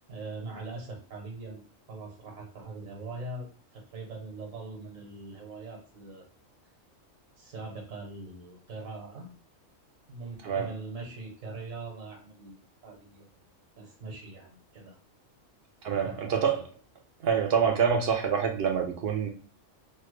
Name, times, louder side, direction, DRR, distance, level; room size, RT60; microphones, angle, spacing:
voice 1, 0.1-1.6 1.9-6.2 7.4-9.3 10.1-13.3 13.8-15.0 15.9-16.6, right 3 dB, 85° right, 1.4 m, -42 dB
voice 2, 15.8-16.6 17.2-19.3, right 7 dB, 60° right, 0.7 m, -26 dB
3.2 x 2.1 x 3.1 m
omnidirectional pair, 1.3 m